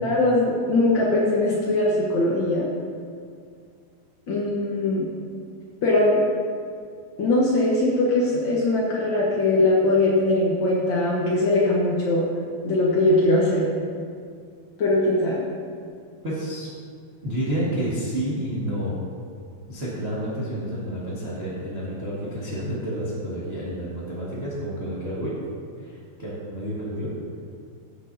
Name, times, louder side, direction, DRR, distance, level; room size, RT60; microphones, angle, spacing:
voice 1, 0.0-2.7 4.3-5.1 5.8-6.2 7.2-12.2 12.6-13.7 14.8-15.4, left 2 dB, 75° left, -5 dB, 1.1 m, -21 dB
voice 2, 16.2-16.7 17.2-19.0 19.7-25.3 25.8-27.1, equal, 35° right, -8 dB, 1.0 m, -29 dB
15.0 x 8.1 x 2.8 m, 2.2 s
omnidirectional pair, 4.2 m